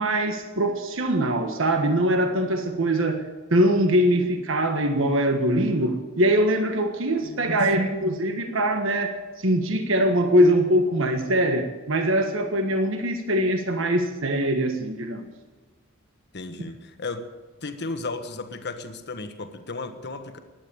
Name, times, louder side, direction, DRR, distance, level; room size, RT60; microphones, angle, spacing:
voice 1, 0.0-3.2 3.5-15.3, right 1 dB, 70° right, 5 dB, 1.5 m, -22 dB
voice 2, 7.2-7.9 16.3-17.2 17.6-20.4, left 3 dB, 55° left, 7 dB, 1.4 m, -35 dB
16.5 x 11.5 x 7.0 m, 1.3 s
head